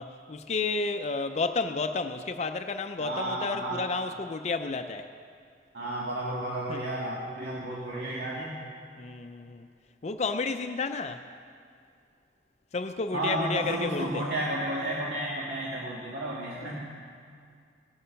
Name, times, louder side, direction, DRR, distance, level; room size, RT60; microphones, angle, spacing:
voice 1, 0.0-5.1 6.7-6.8 9.0-9.7 10.0-11.2 12.7-14.3 16.6-16.8, left 4 dB, 40° left, 7 dB, 0.5 m, -31 dB
voice 2, 3.0-3.9 5.7-8.5 13.1-16.9, right 1 dB, 70° right, -5 dB, 1.8 m, -32 dB
17.5 x 11.0 x 5.7 m, 2.3 s
head